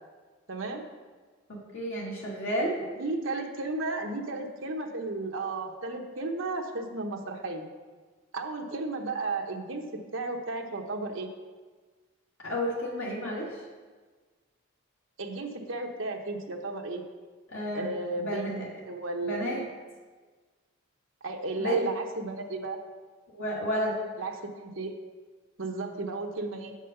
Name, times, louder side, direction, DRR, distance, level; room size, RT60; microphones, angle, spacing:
voice 1, 0.5-0.8 3.0-7.7 8.3-11.3 15.2-17.0 17.7-19.7 21.2-22.8 24.2-24.9 25.6-26.7, right 2 dB, 65° right, 2 dB, 1.0 m, -34 dB
voice 2, 1.5-2.8 12.4-13.6 17.5-17.9 18.2-18.7 19.2-19.6 21.6-21.9 23.3-24.0, equal, 70° left, -4 dB, 1.7 m, -31 dB
7.8 x 5.4 x 6.6 m, 1.4 s
head